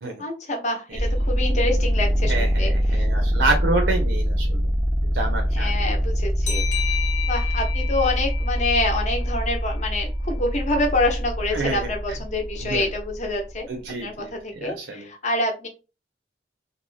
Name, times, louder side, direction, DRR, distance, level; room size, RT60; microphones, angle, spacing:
voice 1, 0.2-3.0 5.5-6.6 7.3-13.7 14.0-15.7, left 2 dB, 40° left, 2 dB, 0.7 m, -26 dB
sound 1, 0.9-13.6, equal, 10° right, 0.3 m, -24 dB
voice 2, 2.2-4.6 5.0-5.7 11.5-11.9 12.6-12.9 13.7-15.1, right 2 dB, 70° right, 3 dB, 0.5 m, -28 dB
sound 2, 6.5-9.8, left 10 dB, 75° left, 0.7 m, -32 dB
2.5 x 2.1 x 3.2 m, 0.30 s
head